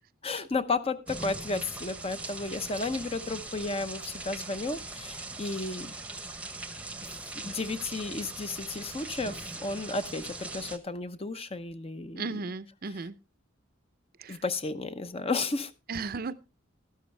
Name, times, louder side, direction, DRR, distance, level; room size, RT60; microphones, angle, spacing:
voice 1, 0.2-5.9 7.3-12.3 14.3-15.7, left 3 dB, 30° left, 0.7 m, -33 dB
sound 1, 1.1-10.8, right 2 dB, 5° right, 0.9 m, -40 dB
voice 2, 12.2-13.2 14.2-14.4 15.9-16.3, right 4 dB, 50° right, 0.6 m, -35 dB
13.0 x 12.5 x 3.3 m
head